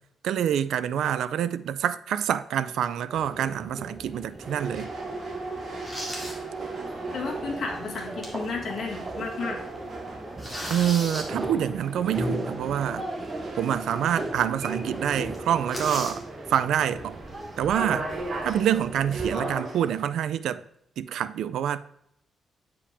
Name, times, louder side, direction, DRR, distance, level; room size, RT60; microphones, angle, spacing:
voice 1, 0.2-4.9 10.7-13.0 13.6-16.2 16.5-17.2 17.6-18.1 18.4-20.6 21.0-21.8, right 10 dB, 85° right, 0.3 m, -26 dB
sound 1, 3.1-19.5, right 1 dB, 25° right, 1.0 m, -37 dB
sound 2, 4.2-4.5 5.0-5.1 5.6-6.4 6.8-6.9 7.8-8.5 8.9-9.0 9.3-9.6 9.9-11.3 13.2-13.3 13.8-13.9 14.2-14.3 14.6-14.8 15.1-16.2 17.3-17.5 18.1-18.7, equal, ahead, 2.1 m, -37 dB
sound 3, 4.4-20.0, right 3 dB, 50° right, 1.4 m, -38 dB
voice 2, 7.1-9.6, left 4 dB, 60° left, 1.8 m, -33 dB
8.5 x 4.9 x 3.4 m
cardioid pair, 130°, 0 cm